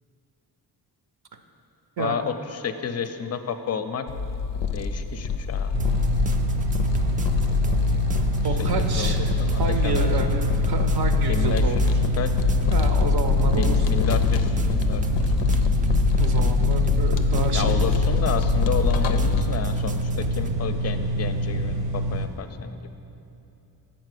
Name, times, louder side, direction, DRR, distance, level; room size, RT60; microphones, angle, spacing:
voice 1, 2.0-4.1 4.7-5.7 7.3-7.6 8.2-10.1 11.3-11.6 12.2-12.3 13.6-15.0 17.5-22.9, left 7 dB, 40° left, 9 dB, 0.5 m, -31 dB
sound 1, 4.1-19.4, left 5 dB, 85° left, 0.5 m, -24 dB
sound 2, 5.7-22.3, right 1 dB, 80° right, 0.9 m, -27 dB
sound 3, 5.8-20.5, right 2 dB, 20° right, 0.3 m, -36 dB
voice 2, 8.4-9.3 9.6-10.4 10.7-11.9 12.7-14.0 16.2-17.8, right 4 dB, 60° right, 5 dB, 0.6 m, -29 dB
7.4 x 4.4 x 6.6 m, 2.8 s
cardioid pair, 55°, 42 cm